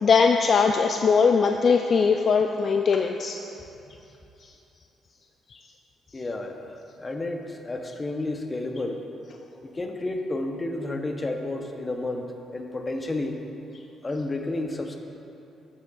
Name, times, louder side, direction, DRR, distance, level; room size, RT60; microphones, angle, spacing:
voice 1, 0.0-3.4, left 5 dB, 50° left, 4 dB, 0.3 m, -20 dB
voice 2, 6.1-9.1 9.6-13.5 14.0-15.0, left 2 dB, 25° left, 4 dB, 0.7 m, -31 dB
12.0 x 7.4 x 2.3 m, 2.9 s
cardioid pair, 90°, 0 cm